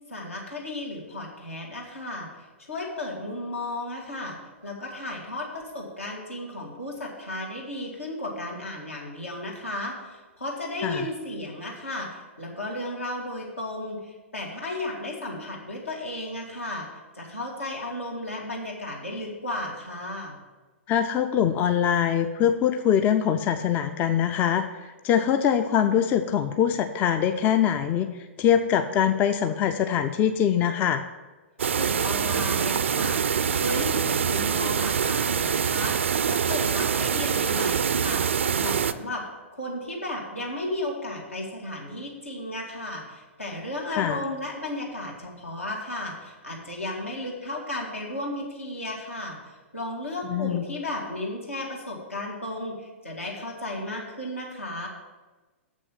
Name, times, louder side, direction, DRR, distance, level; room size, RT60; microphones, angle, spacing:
voice 1, 0.1-2.3 2.7-4.4 4.6-16.9 17.1-20.4 31.7-38.2 38.6-39.2 39.5-49.4 49.7-54.9, left 1 dB, 80° left, -2 dB, 2.4 m, -34 dB
voice 2, 20.9-24.6 25.0-28.1 28.4-31.0 43.9-44.2 50.3-50.6, left 9 dB, 25° left, 8 dB, 0.4 m, -23 dB
sound 1, 31.6-38.9, right 7 dB, 65° right, 0.4 m, -25 dB
7.5 x 6.2 x 7.5 m, 1.2 s
figure-of-eight pair, 105°, 7 cm